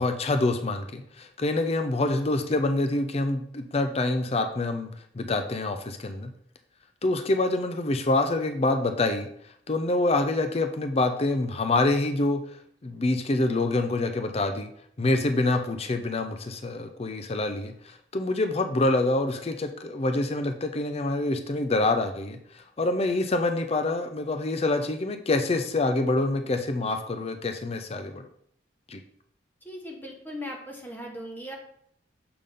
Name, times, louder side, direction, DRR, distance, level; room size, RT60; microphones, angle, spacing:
voice 1, 0.0-6.3 7.0-12.4 12.8-14.7 15.0-28.2 28.9-29.0, left 2 dB, 35° left, 7 dB, 0.5 m, -26 dB
voice 2, 29.6-31.6, equal, 10° left, 0 dB, 1.1 m, -38 dB
6.8 x 3.7 x 5.3 m, 0.68 s
head